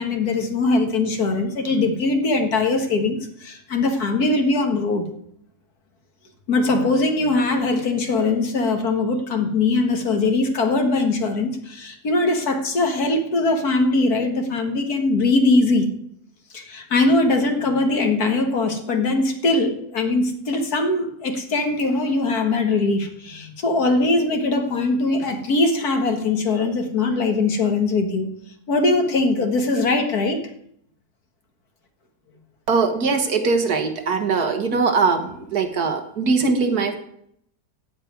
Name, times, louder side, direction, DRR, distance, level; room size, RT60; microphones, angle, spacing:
voice 1, 0.0-5.1 6.5-15.9 16.5-28.3 28.7-30.5, left 3 dB, 70° left, 5 dB, 2.2 m, -21 dB
voice 2, 32.7-37.0, right 4 dB, 70° right, 6 dB, 2.0 m, -21 dB
15.5 x 5.4 x 9.5 m, 0.70 s
omnidirectional pair, 1.7 m